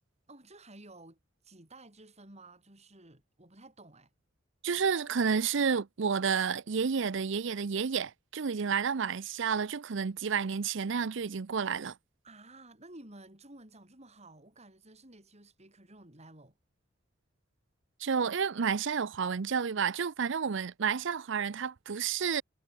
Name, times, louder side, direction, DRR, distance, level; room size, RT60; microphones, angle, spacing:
voice 1, 0.3-4.1 12.2-16.6, right 2 dB, 35° right, 6.6 m, -53 dB
voice 2, 4.6-11.9 18.0-22.4, right 6 dB, 65° right, 0.6 m, -30 dB
head